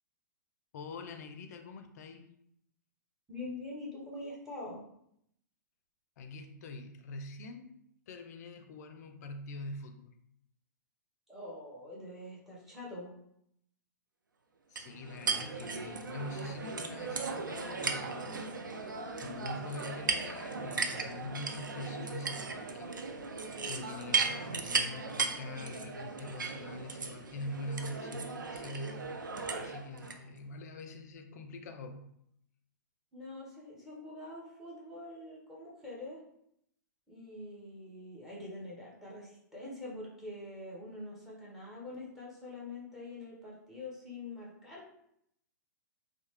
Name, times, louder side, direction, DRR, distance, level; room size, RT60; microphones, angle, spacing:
voice 1, 0.7-2.3 6.2-7.7 8.1-10.1 14.7-22.9 23.3-23.4 23.7-29.2 29.6-32.1, left 2 dB, 60° left, 7 dB, 0.4 m, -44 dB
voice 2, 3.3-4.8 11.3-13.1 33.1-36.2 37.1-44.9, left 2 dB, 5° right, -5 dB, 1.0 m, -45 dB
sound 1, 14.8-30.2, right 4 dB, 90° right, 0.4 m, -36 dB
2.7 x 2.0 x 3.1 m, 0.74 s
hypercardioid pair, 120°, 10 cm